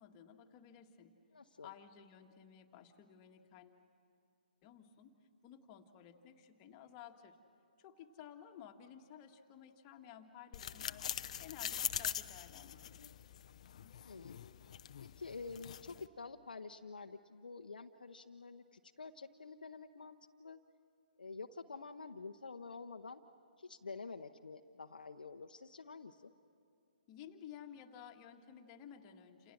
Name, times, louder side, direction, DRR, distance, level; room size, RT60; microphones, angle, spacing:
voice 1, 0.0-1.2 1.6-3.8 4.6-5.1 5.4-7.4 7.8-11.1 11.4-13.1 27.1-29.5, left 9 dB, 25° left, 4 dB, 1.7 m, -55 dB
voice 2, 1.3-1.7 14.0-14.4 15.0-20.6 21.2-23.2 23.6-26.3, left 4 dB, 70° left, 5 dB, 0.9 m, -49 dB
sound 1, 10.5-16.1, left 9 dB, 45° left, 0.7 m, -43 dB
29.0 x 28.0 x 6.4 m, 2.5 s
figure-of-eight pair, 135°, 5 cm